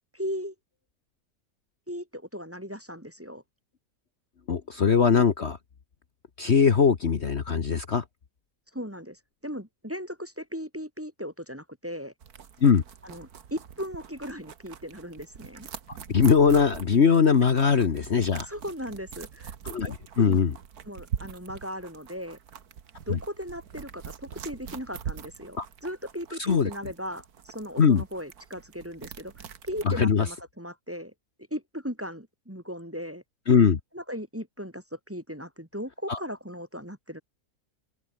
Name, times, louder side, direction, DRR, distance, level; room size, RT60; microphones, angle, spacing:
voice 1, 0.1-0.5 1.9-3.4 8.7-12.1 13.0-15.7 18.4-20.4 20.8-22.4 23.1-31.1 31.5-33.2 33.9-37.2, equal, 10° right, 2.4 m, -37 dB
voice 2, 4.5-5.6 6.4-8.0 12.6-12.8 16.1-18.5 19.6-20.5 23.1-23.2 25.6-25.7 26.4-26.7 27.8-28.0 29.8-30.3 33.5-33.8 36.1-36.2, left 6 dB, 50° left, 1.4 m, -21 dB
sound 1, 12.2-30.0, right 8 dB, 80° right, 1.9 m, -43 dB
open air
omnidirectional pair, 1.6 m